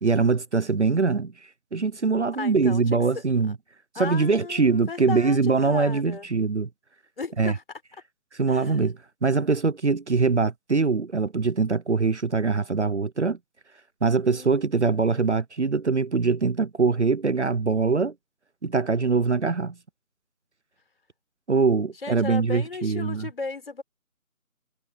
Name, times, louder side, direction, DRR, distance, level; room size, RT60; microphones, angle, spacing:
voice 1, 0.0-1.3 1.7-3.6 4.0-6.7 7.4-7.5 8.3-13.4 14.0-18.1 18.6-19.7 21.5-23.3, right 4 dB, 55° right, 0.9 m, -23 dB
voice 2, 2.4-3.2 4.0-6.3 7.2-7.6 8.5-8.9 14.2-14.8 22.0-23.8, left 4 dB, 40° left, 5.2 m, -35 dB
figure-of-eight pair, 165°, 42 cm